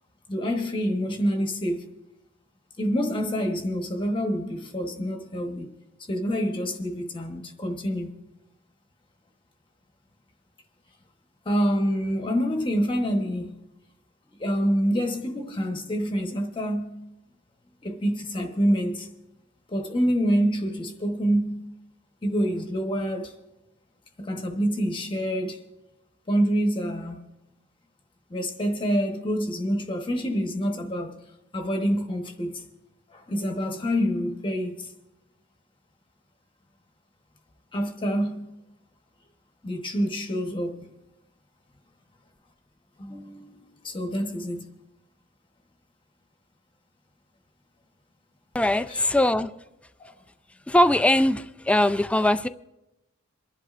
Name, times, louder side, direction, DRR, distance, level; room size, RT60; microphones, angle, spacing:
voice 1, 0.3-1.9 2.8-5.7 6.0-8.1 11.4-13.6 14.3-16.9 17.8-19.1 19.7-21.7 22.2-23.3 24.2-25.6 26.3-27.2 28.3-31.2 31.5-32.7 33.1-34.9 37.7-38.5 39.6-40.9 43.0-44.7 48.9-49.0 50.0-50.2, equal, 25° left, 1.1 m, -27 dB
voice 2, 48.5-49.5 50.7-52.5, left 1 dB, 5° left, 0.3 m, -21 dB
27.5 x 11.0 x 2.5 m
head